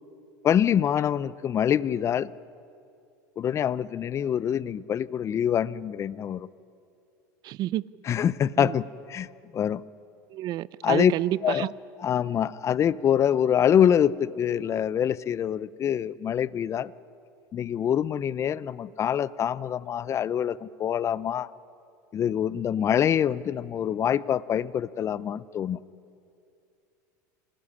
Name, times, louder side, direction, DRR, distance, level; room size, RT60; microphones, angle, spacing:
voice 1, 0.4-2.3 3.4-6.5 8.1-9.3 9.5-9.8 10.8-11.1 11.4-11.7 12.0-16.9 17.5-21.5 22.1-25.8, left 9 dB, 30° left, 0.6 m, -25 dB
voice 2, 7.4-7.8 8.6-8.8 10.3-11.7, right 14 dB, 45° right, 0.6 m, -29 dB
25.5 x 18.5 x 10.0 m
supercardioid pair, 115°, 9 cm